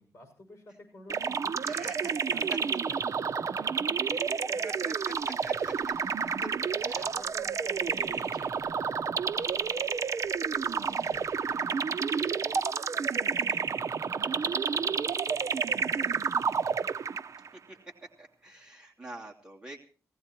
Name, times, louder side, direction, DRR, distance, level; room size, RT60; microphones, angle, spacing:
voice 1, 0.0-1.9 2.3-4.9 6.4-6.6 6.9-9.9 10.5-13.4 14.2-16.8 18.5-18.8, left 2 dB, 40° left, 5 dB, 6.6 m, -53 dB
sound 1, 1.1-17.5, right 6 dB, 55° right, 0.7 m, -30 dB
voice 2, 1.6-2.1 4.6-5.1 5.4-5.9 6.9-7.0 7.9-8.5 13.3-13.6 17.7-17.8 18.2-19.8, right 2 dB, 15° right, -1 dB, 2.8 m, -45 dB
sound 2, 4.9-11.6, left 2 dB, 55° left, 7.9 m, -62 dB
18.5 x 15.5 x 4.4 m, 0.38 s
wide cardioid pair, 140°, 6 cm